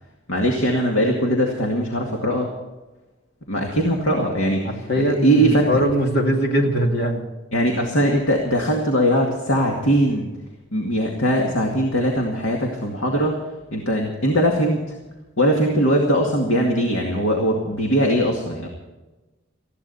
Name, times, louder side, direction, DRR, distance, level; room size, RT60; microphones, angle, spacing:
voice 1, 0.3-2.5 3.5-5.8 7.5-10.3 10.7-13.4 13.7-15.0 15.4-18.7, equal, 75° left, 0 dB, 2.3 m, -20 dB
voice 2, 4.6-7.2, equal, 50° left, 2 dB, 2.5 m, -21 dB
20.0 x 14.5 x 4.2 m, 1.1 s
head